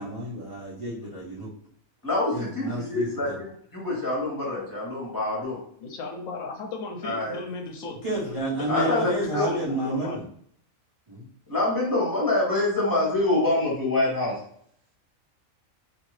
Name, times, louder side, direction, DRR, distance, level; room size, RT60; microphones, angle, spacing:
voice 1, 0.0-1.5 2.3-3.4 8.0-10.2 11.1-11.2, right 1 dB, 35° right, -8 dB, 0.6 m, -30 dB
voice 2, 2.0-3.4 3.7-5.6 7.0-7.4 8.7-9.5 11.5-14.3, left 2 dB, 15° left, -4 dB, 1.1 m, -25 dB
voice 3, 5.8-8.0 8.5-10.2, left 3 dB, 75° left, 2 dB, 0.9 m, -36 dB
2.6 x 2.5 x 3.1 m, 0.65 s
omnidirectional pair, 1.4 m